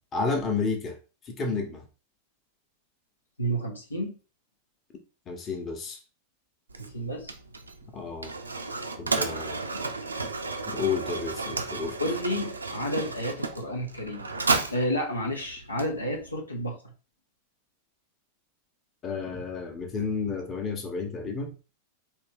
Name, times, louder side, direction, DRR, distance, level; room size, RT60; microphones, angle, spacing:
voice 1, 0.1-1.0 1.3-1.8 5.3-6.0 7.9-8.3 9.0-9.6 10.7-12.0 19.0-21.5, left 4 dB, 25° left, 3 dB, 1.0 m, -31 dB
voice 2, 3.4-4.2 6.8-7.3 9.7-9.8 12.0-14.3 14.7-16.8, equal, 80° left, 1 dB, 0.8 m, -31 dB
Mechanisms, 6.7-16.4, right 3 dB, 80° right, 0.5 m, -33 dB
4.3 x 2.9 x 3.6 m, 0.33 s
figure-of-eight pair, 90°, 0 cm